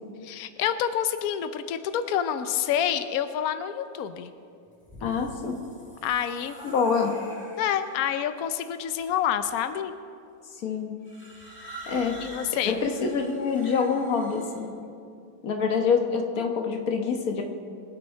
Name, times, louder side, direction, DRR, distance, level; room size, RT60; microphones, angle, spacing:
voice 1, 0.2-4.3 6.0-6.6 7.6-9.9 12.2-12.8, left 9 dB, 80° left, 10 dB, 0.8 m, -28 dB
sound 1, 4.7-8.1 9.0-9.5 11.0-14.7, right 1 dB, 5° left, 1.8 m, -45 dB
voice 2, 5.0-5.6 6.6-7.2 10.6-10.9 11.9-12.2 12.6-14.7 15.4-17.4, left 5 dB, 50° left, 4 dB, 1.5 m, -26 dB
23.0 x 8.5 x 4.4 m, 2.5 s
omnidirectional pair, 2.2 m